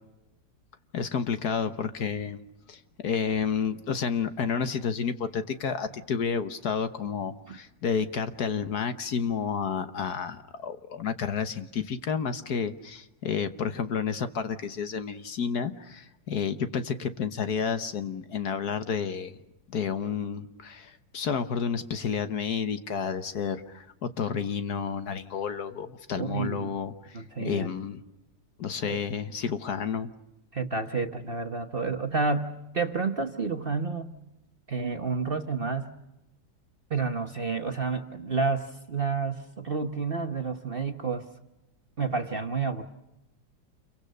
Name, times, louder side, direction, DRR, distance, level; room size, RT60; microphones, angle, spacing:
voice 1, 0.9-2.4 2.7-19.4 19.7-28.0 28.6-30.1, left 6 dB, 60° left, 10 dB, 1.6 m, -30 dB
voice 2, 26.2-26.7 27.1-27.7 28.9-29.0 30.5-34.1 34.7-35.9 36.9-41.3 42.0-42.8, right 4 dB, 35° right, 6 dB, 1.1 m, -30 dB
29.0 x 23.5 x 6.6 m, 0.94 s
omnidirectional pair, 2.0 m